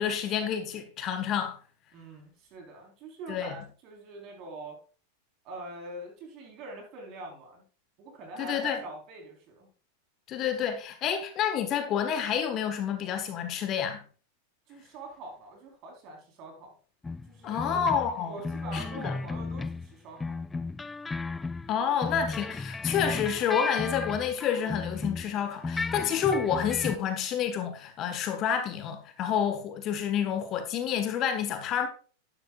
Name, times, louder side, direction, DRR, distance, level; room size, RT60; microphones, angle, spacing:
voice 1, 0.0-1.6 3.3-3.5 8.4-8.8 10.3-14.0 17.4-18.4 18.7-19.1 21.7-31.9, left 8 dB, 35° left, 1.4 m, -29 dB
voice 2, 1.9-4.8 5.4-7.6 8.0-9.7 14.7-16.8 17.3-17.9 18.3-20.4, right 2 dB, 40° right, 4.1 m, -44 dB
sound 1, 17.0-19.9 20.2-25.3 25.6-27.0, left 3 dB, 10° left, 0.3 m, -34 dB
11.5 x 11.5 x 2.4 m
figure-of-eight pair, 90°, 0 cm